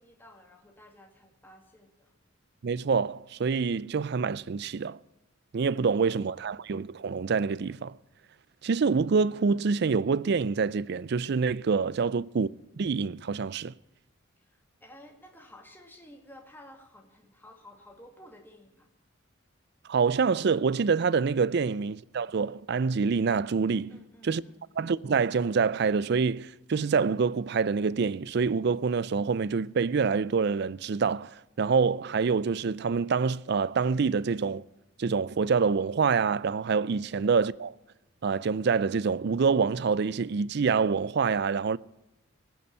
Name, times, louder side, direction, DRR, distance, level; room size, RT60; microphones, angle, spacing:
voice 1, 0.0-2.1 14.4-18.9 23.9-24.6 37.0-37.2, left 1 dB, 10° left, 2.0 m, -54 dB
voice 2, 2.6-5.0 5.5-8.0 8.6-12.5 12.8-13.7 19.9-24.4 24.8-34.6 35.0-37.8 38.2-41.8, right 5 dB, 55° right, 0.4 m, -26 dB
18.0 x 6.9 x 9.1 m
head